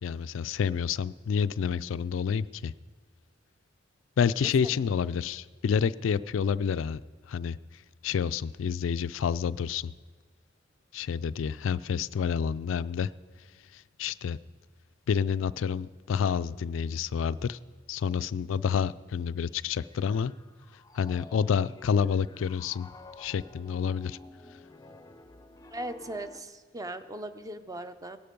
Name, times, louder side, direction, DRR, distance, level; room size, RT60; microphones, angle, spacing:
voice 1, 0.0-2.7 4.2-7.0 7.3-7.6 8.0-9.9 10.9-13.1 13.7-14.4 15.1-17.6 17.9-20.3 20.9-22.9 23.2-24.2, left 7 dB, 80° left, 16 dB, 0.4 m, -28 dB
Piano, 19.4-26.4, left 2 dB, 20° left, 0.6 m, -51 dB
voice 2, 25.7-28.2, right 1 dB, 20° right, 10 dB, 0.6 m, -38 dB
17.5 x 11.5 x 5.3 m, 1.5 s
head